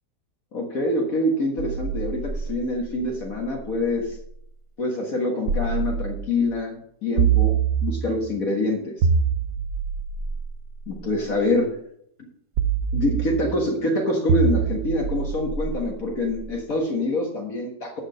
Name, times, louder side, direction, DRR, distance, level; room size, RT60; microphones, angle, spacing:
voice 1, 0.5-4.2 4.8-8.8 10.9-11.7 12.2-12.3 12.9-18.0, left 1 dB, 50° left, 1 dB, 2.0 m, -25 dB
sound 1, 1.6-4.3 5.5-6.5 7.2-8.3 9.0-11.3 12.6-13.7 14.3-16.4, right 6 dB, 65° right, 1.3 m, -26 dB
13.5 x 5.0 x 6.1 m, 0.71 s
omnidirectional pair, 1.9 m